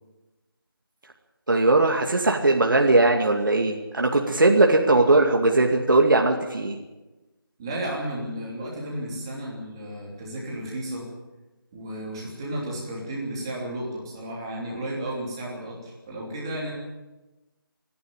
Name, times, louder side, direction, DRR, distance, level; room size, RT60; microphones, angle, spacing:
voice 1, 1.5-6.8, right 2 dB, 60° right, 1 dB, 2.2 m, -19 dB
voice 2, 7.6-11.1 11.7-16.7, right 1 dB, 10° right, -4 dB, 3.2 m, -33 dB
26.0 x 11.0 x 8.9 m, 1.1 s
figure-of-eight pair, 175°, 12 cm